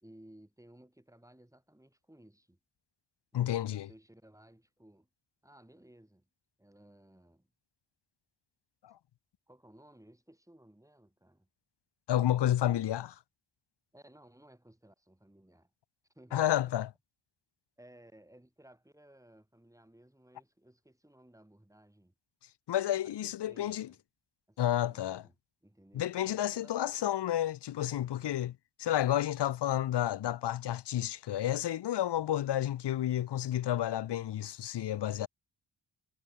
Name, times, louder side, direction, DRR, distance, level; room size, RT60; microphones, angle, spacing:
voice 1, 0.0-2.6 3.3-5.1 5.4-6.3 6.6-7.5 9.5-11.5 13.9-15.7 16.1-16.7 17.8-22.1 23.2-24.0 24.5-25.3 25.6-27.1 28.0-28.4, right 1 dB, 5° right, 2.9 m, -59 dB
voice 2, 3.3-3.9 8.8-8.9 12.1-13.2 16.3-16.9 22.7-23.9 24.6-25.2 25.9-28.5 28.8-35.3, left 12 dB, 60° left, 0.6 m, -31 dB
wide cardioid pair, 90°, 49 cm